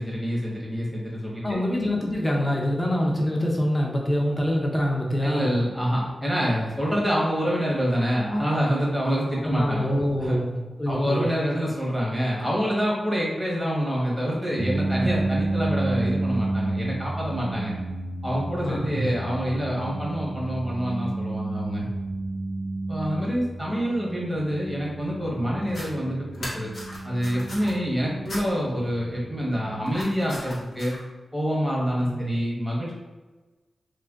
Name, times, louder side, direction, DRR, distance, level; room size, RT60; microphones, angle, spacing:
voice 1, 0.0-1.6 5.2-9.9 10.2-10.4 10.9-17.8 18.2-21.9 22.9-26.7 27.0-30.9 31.3-32.9, equal, ahead, -5 dB, 0.9 m, -26 dB
voice 2, 1.4-5.5 9.4-11.4 18.6-19.1 32.0-32.3, equal, 20° left, -1 dB, 0.5 m, -25 dB
sound 1, 14.6-30.4, right 2 dB, 60° right, 0.3 m, -31 dB
sound 2, 25.6-25.9 26.3-27.7 28.3-28.4 29.8-31.0, left 1 dB, 75° left, 0.9 m, -38 dB
2.4 x 2.1 x 3.4 m, 1.2 s
wide cardioid pair, 120°, 0 cm